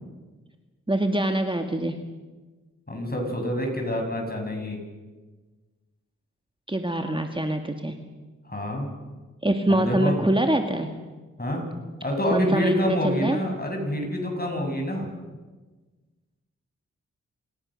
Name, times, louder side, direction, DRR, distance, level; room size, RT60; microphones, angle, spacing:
voice 1, 0.9-2.1 6.7-8.0 9.4-10.9 12.3-13.4, right 1 dB, 15° right, 5 dB, 1.9 m, -24 dB
voice 2, 2.9-4.8 8.4-8.9 9.7-10.1 11.4-11.6 12.0-15.1, left 1 dB, 30° left, 2 dB, 7.8 m, -27 dB
28.0 x 16.5 x 6.6 m, 1.3 s
cardioid pair, 45°, 31 cm